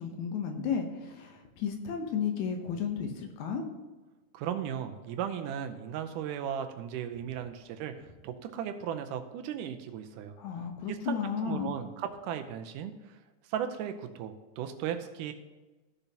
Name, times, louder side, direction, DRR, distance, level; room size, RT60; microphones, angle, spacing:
voice 1, 0.0-3.6 10.4-11.7, left 6 dB, 70° left, 4 dB, 2.2 m, -33 dB
voice 2, 4.3-7.9 8.2-10.4 10.9-13.2 13.5-15.3, right 9 dB, 85° right, 7 dB, 2.3 m, -36 dB
15.0 x 6.8 x 2.9 m, 1.2 s
omnidirectional pair, 3.6 m